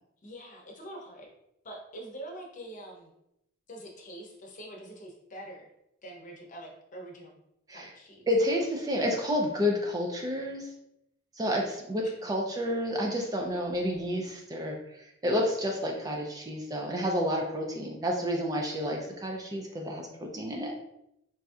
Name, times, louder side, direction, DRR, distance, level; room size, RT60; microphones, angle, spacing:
voice 1, 0.2-1.3 1.6-3.1 3.7-5.7 6.0-7.4 7.7-8.3 11.5-12.3, right 1 dB, 40° left, 0 dB, 0.7 m, -45 dB
voice 2, 8.3-10.7 11.4-20.8, equal, 20° right, 1 dB, 0.4 m, -30 dB
4.2 x 2.6 x 2.3 m, 0.81 s
head